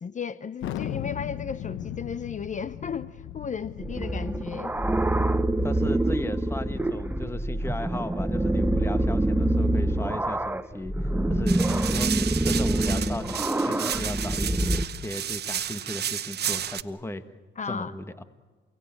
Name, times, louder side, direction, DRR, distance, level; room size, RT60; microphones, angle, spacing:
voice 1, 0.0-4.7 17.6-17.9, left 6 dB, 40° left, 0.8 m, -34 dB
Thunder, 0.6-5.8, left 11 dB, 85° left, 1.2 m, -37 dB
sound 1, 3.8-14.8, right 1 dB, 10° right, 1.0 m, -26 dB
voice 2, 5.6-14.5 14.9-17.3 17.7-18.2, left 1 dB, 10° left, 1.6 m, -36 dB
sound 2, 11.5-16.8, right 9 dB, 55° right, 1.1 m, -32 dB
28.5 x 18.0 x 9.0 m
cardioid pair, 90°, 20 cm